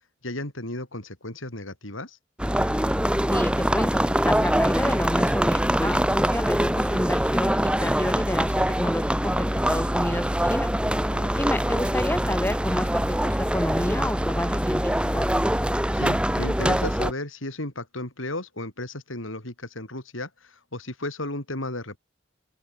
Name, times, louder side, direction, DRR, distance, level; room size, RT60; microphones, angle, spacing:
voice 1, 0.2-2.2 11.1-11.3 15.9-22.0, left 1 dB, 75° left, 6.3 m, -34 dB
sound 1, 2.4-17.1, equal, 5° right, 2.9 m, -24 dB
voice 2, 3.3-10.7 11.4-15.3, left 1 dB, 10° left, 5.7 m, -30 dB
open air
head